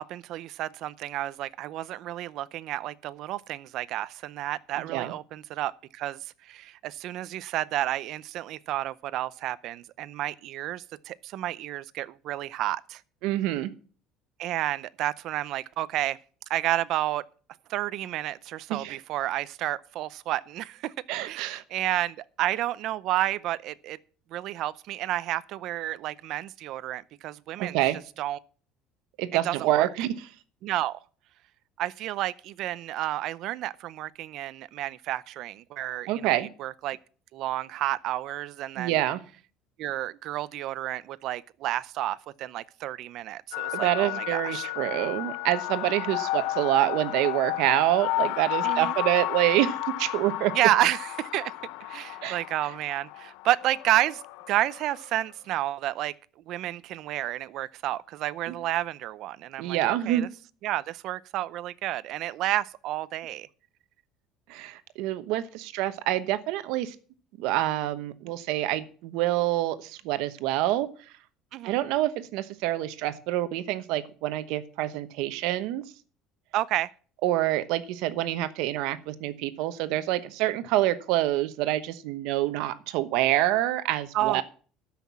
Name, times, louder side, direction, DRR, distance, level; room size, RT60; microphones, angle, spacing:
voice 1, 0.0-13.0 14.4-16.2 16.5-17.2 17.7-20.9 21.2-24.0 24.3-27.8 28.2-28.4 29.4-29.9 30.6-31.0 31.8-37.0 37.3-39.0 39.8-44.7 48.6-48.9 50.5-51.5 51.9-54.2 54.5-56.1 56.5-60.3 60.6-63.5 71.5-71.8 76.5-76.9 84.1-84.4, right 14 dB, 55° right, 0.6 m, -30 dB
voice 2, 4.8-5.1 13.2-13.7 18.7-19.0 21.1-21.6 27.6-28.0 29.2-30.3 36.1-36.5 38.8-39.2 43.7-50.5 52.2-52.4 58.5-58.6 59.6-60.3 64.5-66.9 67.4-70.9 71.6-75.8 77.2-84.4, right 14 dB, 75° right, 1.0 m, -27 dB
sound 1, 43.5-55.2, left 17 dB, 80° left, 0.6 m, -33 dB
13.0 x 5.9 x 7.4 m
cardioid pair, 140°, 0 cm